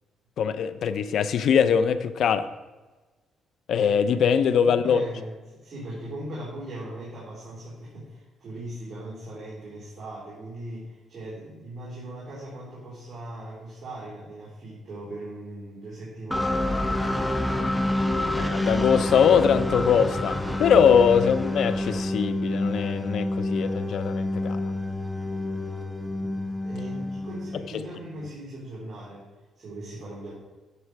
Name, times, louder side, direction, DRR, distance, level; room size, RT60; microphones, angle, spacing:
voice 1, 0.4-2.5 3.7-5.0 18.4-24.6 27.7-27.8, left 7 dB, 70° left, 12 dB, 0.6 m, -22 dB
voice 2, 4.6-16.6 26.1-29.3 29.6-30.3, right 1 dB, 40° right, -7 dB, 3.7 m, -39 dB
sound 1, 16.3-28.1, left 1 dB, 5° left, 0.9 m, -28 dB
10.0 x 7.2 x 4.7 m, 1.2 s
cardioid pair, 90°, 0 cm